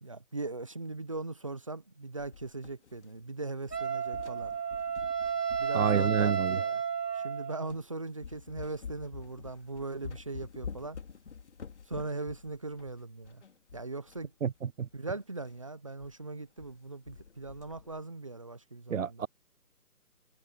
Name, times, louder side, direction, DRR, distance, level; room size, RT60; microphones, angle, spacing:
voice 1, 0.0-4.6 5.6-6.8 7.1-11.0 11.9-13.4 13.7-14.3 14.9-19.3, right 3 dB, 20° right, 0.8 m, -39 dB
sound 1, 2.3-3.3 3.6-6.6 7.2-7.3 7.7-7.9 8.2-14.3 14.5-14.6 14.9-15.0 15.4-15.6 16.0-16.1 16.4-16.8 17.1-18.0, left 6 dB, 45° left, 4.9 m, -47 dB
Wind instrument woodwind instrument, 3.7-7.7, right 7 dB, 90° right, 1.3 m, -32 dB
voice 2, 5.7-6.6 14.4-14.5 14.8-14.9 18.9-19.3, right 7 dB, 55° right, 0.6 m, -28 dB
figure-of-eight pair, 160°, 47 cm